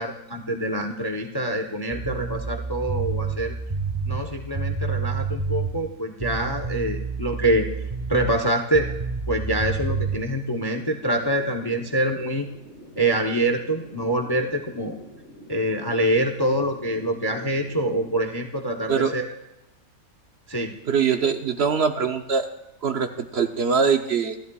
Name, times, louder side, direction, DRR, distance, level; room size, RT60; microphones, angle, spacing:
voice 1, 0.0-3.5 4.1-7.7 8.1-8.9 9.3-12.5 13.0-15.0 15.5-19.3 20.5-20.8, right 1 dB, 25° left, 4 dB, 0.5 m, -25 dB
sound 1, 1.9-5.8 6.2-8.4 8.7-10.2, right 4 dB, 35° right, 0.4 m, -29 dB
sound 2, 10.7-18.1, left 1 dB, 70° left, 6.8 m, -46 dB
voice 2, 20.9-22.5 22.8-24.3, right 6 dB, 55° right, 7 dB, 0.8 m, -22 dB
27.5 x 11.0 x 2.3 m, 0.90 s
omnidirectional pair, 1.5 m